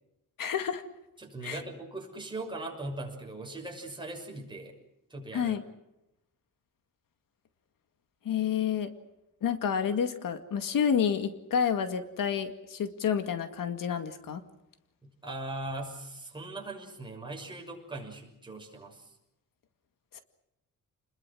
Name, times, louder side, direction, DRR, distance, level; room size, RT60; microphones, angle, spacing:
voice 1, 0.4-0.8 1.4-1.6 5.3-5.6 8.3-8.9 9.4-14.4 20.1-20.2, left 7 dB, 85° left, 8 dB, 2.1 m, -29 dB
voice 2, 1.2-4.7 5.1-5.6 15.0-19.1, right 2 dB, 15° right, 1 dB, 6.3 m, -40 dB
30.0 x 21.5 x 6.3 m, 0.90 s
wide cardioid pair, 165°, 33 cm